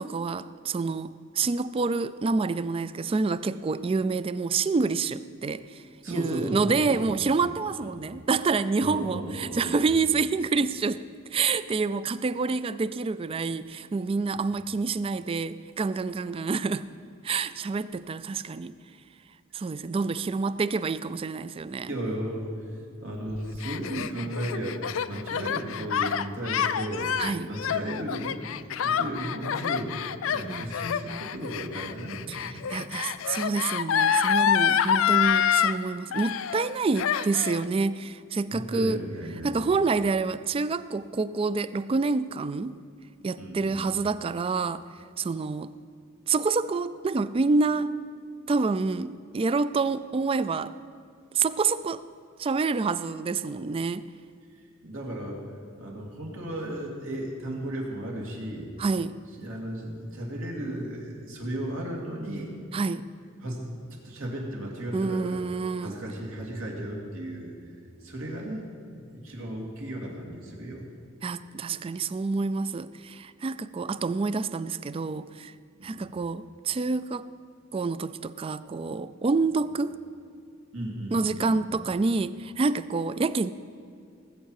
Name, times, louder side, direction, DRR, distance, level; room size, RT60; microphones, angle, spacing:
voice 1, 0.0-11.0 11.3-16.9 17.2-18.7 19.5-21.9 27.2-27.5 30.4-30.7 32.3-32.4 32.7-39.0 39.4-42.8 43.2-44.9 45.2-45.7 46.3-48.0 48.5-50.8 51.3-52.0 52.4-54.1 58.8-59.1 62.7-63.0 64.9-66.0 71.2-75.5 75.8-77.3 77.7-80.0 81.1-83.5, right 4 dB, 25° right, 0.3 m, -27 dB
voice 2, 6.0-7.3 7.8-8.0 8.8-9.7 14.3-14.4 21.8-22.7 23.0-27.1 27.5-32.6 38.5-39.6 43.4-43.9 54.6-55.4 55.8-58.7 59.4-62.5 63.4-65.4 65.8-67.5 68.0-68.6 68.9-70.9 75.8-76.1 79.4-79.5 80.7-81.6, right 1 dB, 80° right, 2.6 m, -35 dB
Gasp, 23.3-35.8 36.1-36.7 37.0-37.6, left 8 dB, 75° left, 0.4 m, -27 dB
19.0 x 8.0 x 4.8 m
head